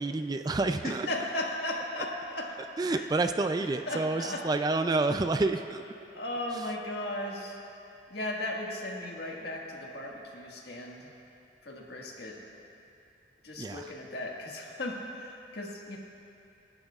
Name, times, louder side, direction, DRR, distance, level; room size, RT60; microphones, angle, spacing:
voice 1, 0.0-1.1 2.8-5.8 6.5-6.7 13.6-13.9, right 3 dB, 20° right, 8 dB, 0.3 m, -29 dB
voice 2, 0.8-2.5 2.9-3.1 3.9-4.4 6.1-7.6 8.1-11.1 11.7-12.4 13.4-16.0, left 1 dB, 65° left, -2 dB, 1.7 m, -36 dB
27.5 x 11.5 x 2.4 m, 2.7 s
head